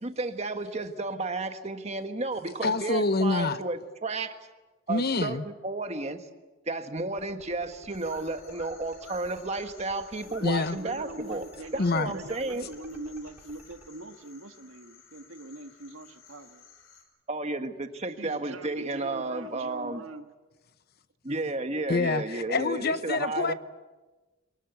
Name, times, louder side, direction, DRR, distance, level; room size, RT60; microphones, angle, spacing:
voice 1, 0.0-4.3 4.9-6.2 6.7-11.4 11.9-12.7 17.3-20.0 21.2-23.5, right 2 dB, 30° right, 1.5 m, -32 dB
voice 2, 2.6-3.6 4.9-5.4 10.4-10.8 11.8-12.1 21.9-23.5, left 3 dB, 50° left, 0.8 m, -26 dB
sound 1, 7.0-13.9, right 1 dB, 10° right, 3.1 m, -53 dB
sound 2, 7.9-17.0, left 5 dB, 80° left, 4.9 m, -54 dB
voice 3, 10.2-16.6 18.2-20.3, right 2 dB, 80° right, 1.5 m, -43 dB
24.0 x 19.5 x 8.2 m
head